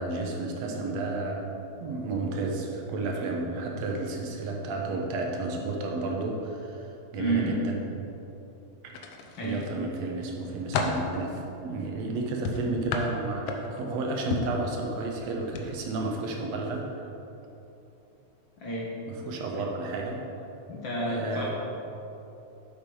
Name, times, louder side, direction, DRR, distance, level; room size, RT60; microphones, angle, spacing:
voice 1, 0.0-1.5 1.8-7.8 9.4-17.1 19.1-20.2 21.1-21.5, right 3 dB, 65° right, 0 dB, 2.1 m, -32 dB
voice 2, 7.2-7.6 9.4-9.6 18.6-19.0 20.7-21.5, right 2 dB, 65° left, -4 dB, 1.2 m, -30 dB
sound 1, 8.9-9.7 10.2-11.1 12.4-13.9 14.3-14.6 15.5-15.7 16.0-16.2, left 4 dB, 80° left, 1.3 m, -31 dB
7.9 x 6.6 x 5.5 m, 3.0 s
omnidirectional pair, 3.5 m